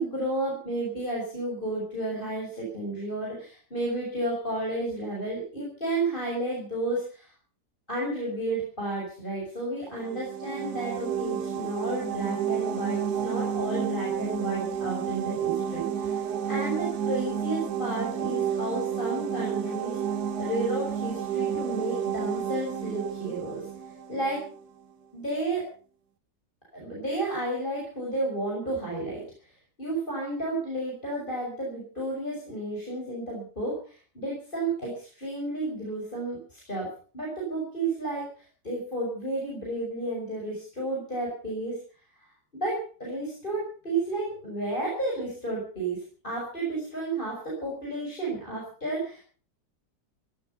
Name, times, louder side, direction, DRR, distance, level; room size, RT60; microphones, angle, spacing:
voice 1, 0.0-7.3 7.9-20.0 20.4-23.7 24.1-24.4 25.1-25.6 26.7-29.5 29.8-36.9 37.1-41.8 42.2-49.2, right 2 dB, 30° left, -3 dB, 6.5 m, -32 dB
sound 1, 9.9-24.6, right 8 dB, 70° right, 1.7 m, -31 dB
17.5 x 13.5 x 5.7 m, 0.41 s
omnidirectional pair, 1.8 m